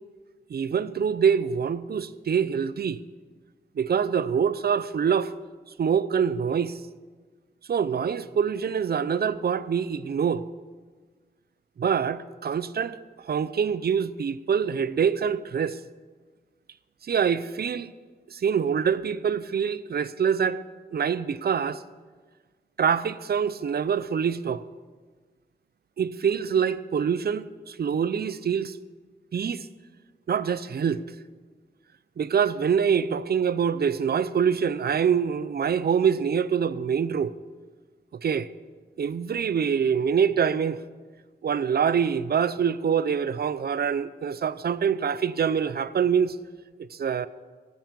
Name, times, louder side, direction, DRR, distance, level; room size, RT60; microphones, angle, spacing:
voice 1, 0.5-3.0 3.8-5.3 5.8-6.8 7.7-10.4 11.8-13.0 13.3-15.8 17.0-17.9 18.3-20.6 20.9-21.8 22.8-24.6 26.0-28.8 29.3-29.7 30.3-31.0 32.2-37.3 38.2-38.5 39.0-40.8 41.4-46.4 46.9-47.3, right 7 dB, 65° right, 0.6 m, -25 dB
15.0 x 9.5 x 6.9 m
wide cardioid pair, 115°, 17 cm